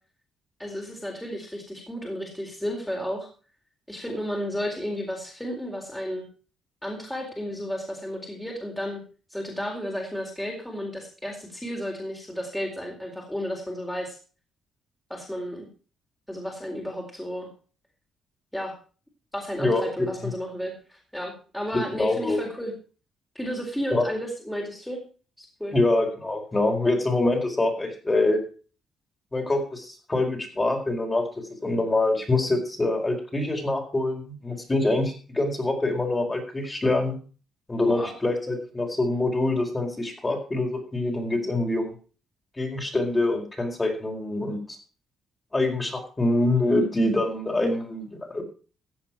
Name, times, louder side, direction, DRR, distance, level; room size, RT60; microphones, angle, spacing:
voice 1, 0.6-3.3 3.9-6.3 6.8-9.0 9.3-14.2 15.1-15.7 16.3-17.5 18.5-18.7 19.3-22.7 23.3-25.0 25.4-25.8 37.8-38.1, equal, 5° left, -1 dB, 4.1 m, -33 dB
voice 2, 19.6-20.1 21.7-22.4 23.9-24.0 25.7-28.4 29.3-37.2 37.7-41.9 42.6-44.6 45.5-48.4, left 2 dB, 20° left, 1 dB, 4.6 m, -25 dB
15.0 x 7.8 x 5.9 m, 0.38 s
cardioid pair, 90°, 0 cm